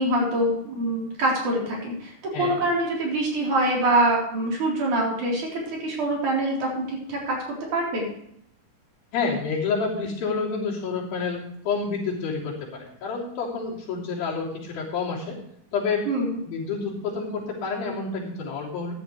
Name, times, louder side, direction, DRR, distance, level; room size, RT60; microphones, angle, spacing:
voice 1, 0.0-8.1 16.1-16.4, right 1 dB, 55° right, -3 dB, 5.2 m, -25 dB
voice 2, 9.1-15.4 15.7-16.1 16.5-18.9, left 4 dB, 75° left, -5 dB, 5.1 m, -29 dB
15.0 x 10.5 x 3.2 m, 0.70 s
omnidirectional pair, 4.3 m